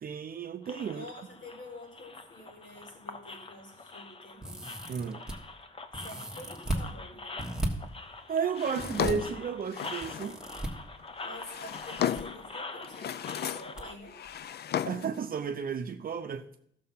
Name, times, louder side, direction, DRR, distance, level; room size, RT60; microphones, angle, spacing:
voice 1, 0.0-1.1 4.9-5.2 8.3-10.4 14.8-16.5, right 6 dB, 50° right, 0.6 m, -33 dB
sound 1, 0.6-13.9, left 3 dB, 30° left, 0.8 m, -45 dB
voice 2, 0.8-4.6 5.9-7.4 11.2-14.2, left 1 dB, 80° left, 4.7 m, -48 dB
sound 2, 4.4-5.3 5.9-6.8 7.4-7.7 8.8-9.1 10.0-10.7 11.8-12.2 12.5-12.6 13.8-13.9 14.2-14.4, right 1 dB, 5° right, 1.4 m, -35 dB
Drawer open or close, 8.5-10.4 11.2-12.5 12.8-13.8 14.1-15.2, left 10 dB, 60° left, 0.4 m, -34 dB
14.0 x 6.7 x 5.6 m
wide cardioid pair, 155°, 19 cm